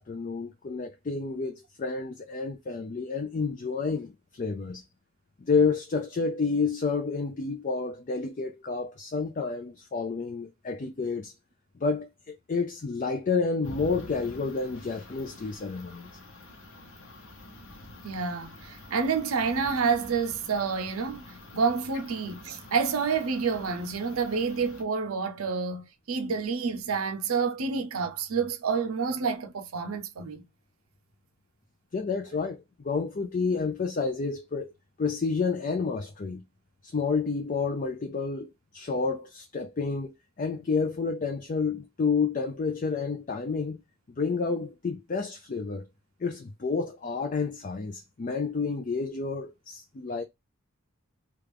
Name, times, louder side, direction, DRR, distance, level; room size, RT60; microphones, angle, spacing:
voice 1, 0.0-4.8 5.4-11.3 11.8-16.1 31.9-34.7 35.0-36.4 36.8-43.8 44.1-45.9 46.2-50.2, left 4 dB, 40° left, 0.4 m, -30 dB
sound 1, 13.6-24.8, left 2 dB, 65° left, 0.9 m, -47 dB
voice 2, 18.0-21.2 21.5-30.5, right 5 dB, 85° right, 0.6 m, -28 dB
3.3 x 2.4 x 3.4 m
head